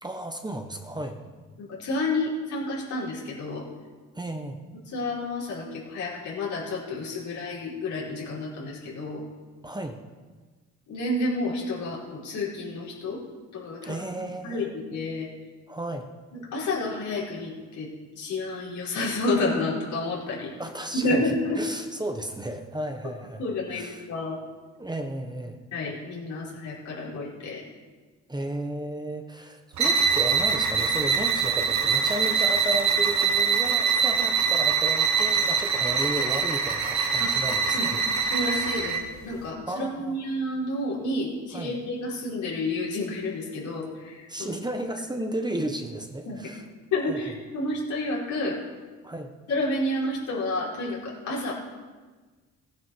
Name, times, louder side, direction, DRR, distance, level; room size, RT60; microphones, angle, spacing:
voice 1, 0.0-1.2 4.1-4.6 9.6-10.0 13.8-14.7 15.7-16.1 20.6-21.3 21.6-24.0 24.8-25.6 28.3-38.0 39.7-40.2 41.5-41.8 44.3-46.6 47.1-47.2 49.0-49.3, right 1 dB, 15° right, 5 dB, 1.2 m, -33 dB
voice 2, 1.6-3.6 4.9-9.2 10.9-13.2 13.5-15.3 16.3-17.9 18.2-20.5 20.9-21.6 23.4-24.4 25.7-27.6 37.2-37.3 37.7-37.9 38.3-39.0 39.2-44.5 46.3-46.4 46.9-48.6 49.5-51.5, left 2 dB, 75° left, -6 dB, 4.7 m, -30 dB
sound 1, 29.7-39.1, right 6 dB, 70° right, 1.7 m, -24 dB
17.0 x 9.6 x 4.8 m, 1.4 s
cardioid pair, 90°, 30 cm